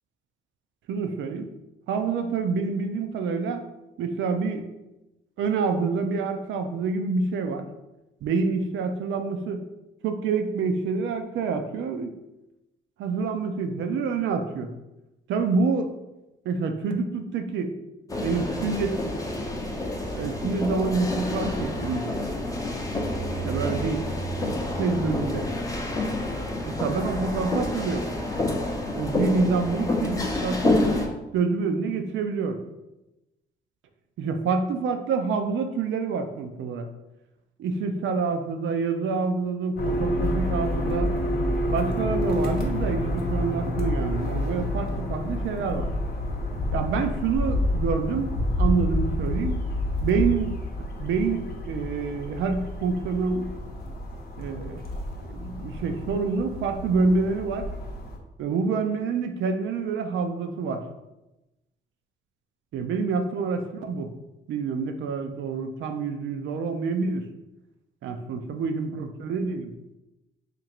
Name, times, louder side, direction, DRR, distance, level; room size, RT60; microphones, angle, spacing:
voice 1, 0.9-1.5 1.9-3.7 4.0-4.7 5.4-7.7 8.2-9.7 10.0-12.1 13.0-14.7 15.3-15.9 16.5-17.7 18.2-19.2 20.2-22.1 23.4-24.1 24.4-25.5 26.7-28.1 28.9-30.9 31.3-32.6 34.2-36.9 37.6-41.1 41.7-45.9 46.7-49.6 50.0-50.5 51.0-53.5 54.4-54.9 55.2-57.7 58.4-60.8 62.7-64.1 64.5-67.2 68.0-69.7, right 4 dB, 75° right, 7 dB, 0.5 m, -27 dB
sound 1, 18.1-31.1, left 2 dB, 15° left, 0.6 m, -28 dB
sound 2, 39.7-58.2, left 1 dB, 50° left, 0.8 m, -28 dB
2.9 x 2.6 x 4.4 m, 0.98 s
cardioid pair, 90°, 20 cm